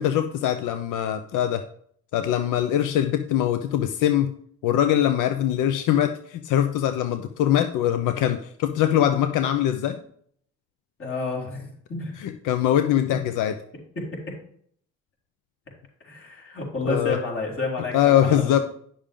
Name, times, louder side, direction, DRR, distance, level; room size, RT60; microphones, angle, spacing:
voice 1, 0.0-1.7 2.1-4.3 4.6-10.0 12.2-13.6 16.9-17.2 17.9-18.6, left 11 dB, 85° left, 8 dB, 0.7 m, -22 dB
voice 2, 11.0-12.2 14.0-14.3 16.0-18.6, left 3 dB, 45° left, -2 dB, 4.3 m, -30 dB
10.5 x 6.7 x 3.7 m, 0.62 s
cardioid pair, 90°, 30 cm